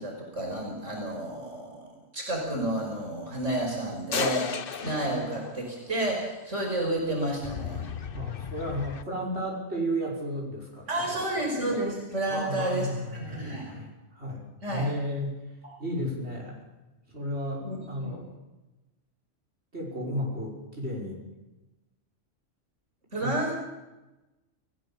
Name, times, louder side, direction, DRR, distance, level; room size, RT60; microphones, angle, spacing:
voice 1, 0.0-1.9 2.1-7.8 10.9-13.7 14.6-14.8 15.6-15.7 17.6-18.1 23.1-23.5, right 1 dB, 80° right, 0 dB, 5.5 m, -31 dB
sound 1, 4.1-6.0 7.4-9.0, left 7 dB, 50° left, 1.1 m, -35 dB
voice 2, 8.1-11.0 12.3-15.4 15.8-16.6 17.1-18.3 19.7-21.2 23.2-23.4, equal, 60° right, -2 dB, 6.1 m, -33 dB
29.0 x 18.0 x 7.3 m, 1.1 s
omnidirectional pair, 1.2 m